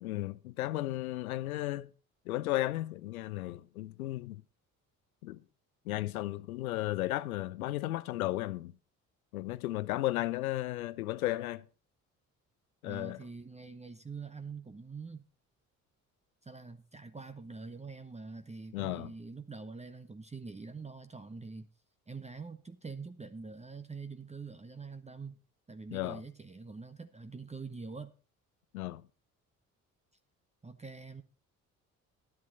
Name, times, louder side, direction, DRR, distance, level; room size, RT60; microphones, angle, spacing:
voice 1, 0.0-1.9 2.3-4.4 5.2-5.4 5.9-8.7 9.3-11.6 12.8-13.2 18.7-19.1 25.9-26.2 28.7-29.0, left 16 dB, 80° left, 0.6 m, -34 dB
voice 2, 12.8-15.3 16.4-21.7 22.1-25.4 25.7-28.1 30.6-31.2, right 4 dB, 15° right, 0.9 m, -45 dB
11.0 x 11.0 x 4.0 m
figure-of-eight pair, 45°, 42 cm